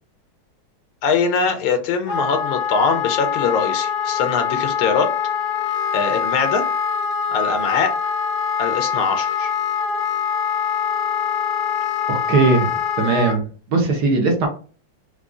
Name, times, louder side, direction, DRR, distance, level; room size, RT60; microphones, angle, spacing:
voice 1, 1.0-5.1 5.9-6.6 7.3-7.9 8.6-9.5, left 5 dB, 90° left, 7 dB, 1.5 m, -22 dB
Wind instrument woodwind instrument, 2.1-13.4, left 7 dB, 65° left, 1.0 m, -23 dB
voice 2, 12.1-12.7 13.0-14.5, right 3 dB, 65° right, 2 dB, 1.1 m, -19 dB
4.7 x 2.3 x 2.4 m, 0.39 s
omnidirectional pair, 2.2 m